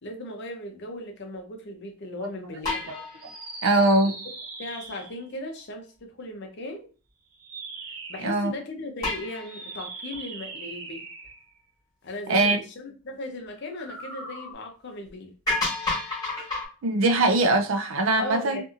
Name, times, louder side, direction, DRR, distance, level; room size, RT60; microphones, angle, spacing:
voice 1, 0.0-2.9 4.0-4.2 4.6-6.9 8.1-11.0 12.0-15.3 18.2-18.6, left 1 dB, 55° left, 0.7 m, -37 dB
sound 1, 2.6-4.1 9.0-10.2 11.2-11.3 15.1-15.2 15.5-16.7, left 2 dB, 20° left, 1.3 m, -30 dB
sound 2, 3.2-5.3 7.3-8.4 9.4-11.6 13.6-14.5, right 3 dB, 80° right, 0.9 m, -40 dB
voice 2, 3.6-4.1 8.2-8.5 12.3-12.6 16.8-18.6, right 2 dB, 65° right, 0.5 m, -21 dB
2.6 x 2.6 x 2.4 m
head